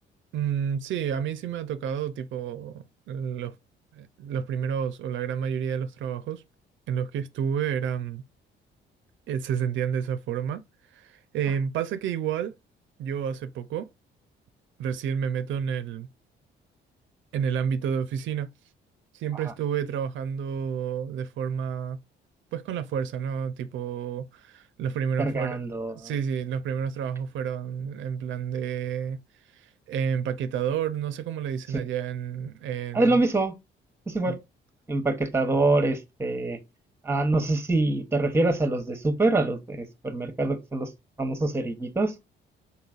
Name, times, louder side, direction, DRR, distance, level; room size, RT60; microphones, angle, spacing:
voice 1, 0.3-3.5 3.9-6.4 6.9-8.2 9.3-10.6 10.9-12.5 13.0-13.9 14.8-16.1 17.3-18.5 19.1-22.0 22.5-25.6 25.9-29.2 29.5-33.2 34.3-34.4, right 8 dB, 75° right, 0.5 m, -30 dB
voice 2, 25.2-26.1 31.7-31.8 32.9-33.5 34.1-34.3 34.9-36.6 37.0-40.9 41.2-42.2, right 2 dB, 10° right, 0.9 m, -25 dB
4.1 x 3.9 x 2.3 m
cardioid pair, 90°, 20 cm